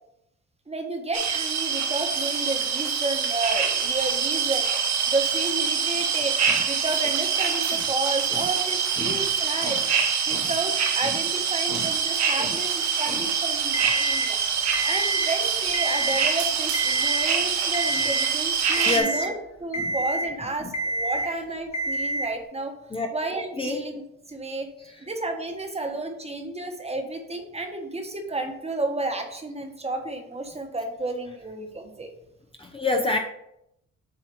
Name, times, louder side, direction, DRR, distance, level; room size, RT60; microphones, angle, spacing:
voice 1, 0.7-4.7 5.1-6.4 6.7-9.8 10.3-14.4 14.8-19.3 19.6-22.7 23.1-24.7 25.0-32.1, right 2 dB, 20° right, 4 dB, 1.3 m, -31 dB
sound 1, 1.1-19.0, right 7 dB, 60° right, 1.2 m, -25 dB
Alarm, 13.7-14.3 14.7-15.3 15.7-16.3 16.7-17.3 17.7-18.3 18.7-19.3 19.7-20.3 20.7-21.3 21.7-22.3, right 1 dB, 65° left, 1.4 m, -28 dB
voice 2, 18.8-19.2 19.8-19.9 20.6-20.7 22.9-23.1 23.6-23.8 24.8-25.0 32.6-33.2, left 2 dB, 20° left, 2 dB, 0.7 m, -29 dB
7.8 x 2.8 x 6.0 m, 0.80 s
cardioid pair, 90°, 30 cm